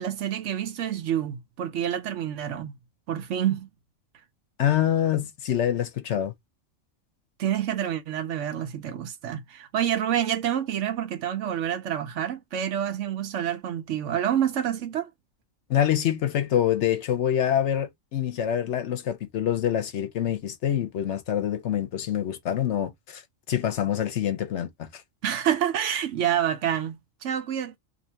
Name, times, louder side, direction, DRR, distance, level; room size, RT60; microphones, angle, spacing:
voice 1, 0.0-2.8 3.1-3.7 7.4-15.1 25.2-27.8, right 10 dB, 70° right, 0.9 m, -28 dB
voice 2, 4.6-6.3 15.7-23.2 23.5-25.0, left 10 dB, 65° left, 0.9 m, -26 dB
2.8 x 2.6 x 4.2 m
omnidirectional pair, 1.4 m